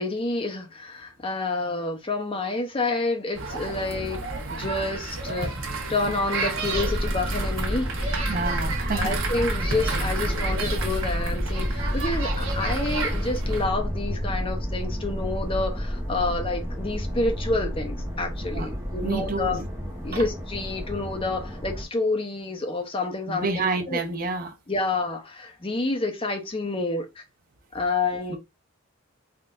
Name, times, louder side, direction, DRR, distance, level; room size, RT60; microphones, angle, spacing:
voice 1, 0.0-4.2 4.5-5.5 5.9-8.4 9.0-19.6 20.0-24.0 24.7-27.2 27.7-28.4, left 3 dB, 25° left, 0.7 m, -29 dB
sound 1, 3.4-13.7, right 3 dB, 75° right, 1.0 m, -31 dB
sound 2, 6.7-21.9, equal, 10° right, 1.1 m, -30 dB
voice 2, 8.3-9.2 18.5-18.7 19.0-19.7 20.1-20.2 23.3-24.6 28.3-28.4, right 3 dB, 45° right, 0.7 m, -29 dB
3.7 x 3.3 x 2.5 m
head